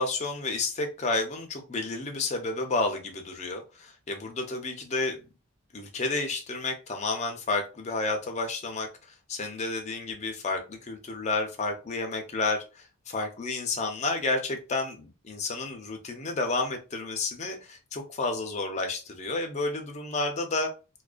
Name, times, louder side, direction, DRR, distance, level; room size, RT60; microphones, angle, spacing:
voice 1, 0.0-5.2 5.7-8.9 9.3-12.9 13.1-20.7, left 3 dB, 30° left, 4 dB, 0.4 m, -31 dB
2.3 x 2.1 x 2.4 m, 0.31 s
head